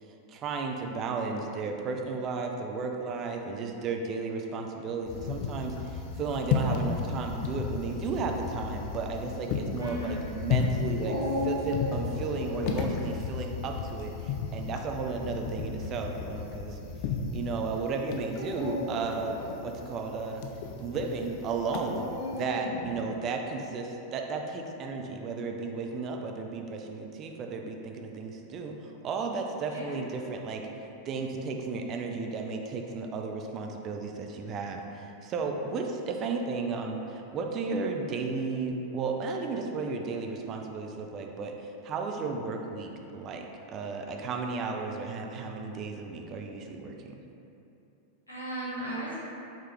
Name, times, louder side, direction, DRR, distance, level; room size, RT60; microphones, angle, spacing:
voice 1, 0.3-11.2 11.4-16.8 17.3-19.4 19.6-20.4 20.8-30.6 31.0-47.2, right 4 dB, 30° right, 2 dB, 0.4 m, -34 dB
sound 1, 5.0-22.4, left 6 dB, 45° left, 0.3 m, -34 dB
voice 2, 9.8-10.3 29.7-30.1 48.3-49.1, right 1 dB, 80° left, -8 dB, 1.4 m, -36 dB
Dog, 11.0-12.7 14.7-15.2 16.0-16.1 18.3-19.5 22.0-23.0, left 1 dB, 60° right, 1.0 m, -34 dB
4.7 x 2.9 x 3.4 m, 2.8 s
figure-of-eight pair, 90°, 0 cm